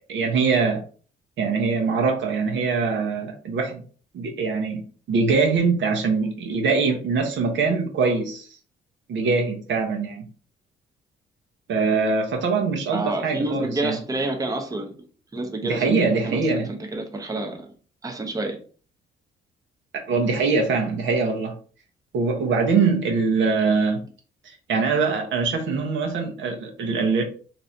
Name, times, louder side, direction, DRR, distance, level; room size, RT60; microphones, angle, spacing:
voice 1, 0.1-0.8 1.4-3.8 4.1-4.8 5.1-8.5 9.1-10.2 11.7-14.0 15.6-16.8 19.9-21.6 22.1-24.0 24.4-27.2, right 4 dB, 70° right, 0.8 m, -23 dB
voice 2, 12.9-14.9 15.3-16.4 16.9-17.7 18.0-18.6, right 2 dB, 15° right, 0.6 m, -28 dB
3.1 x 2.6 x 2.7 m
cardioid pair, 90°, 20 cm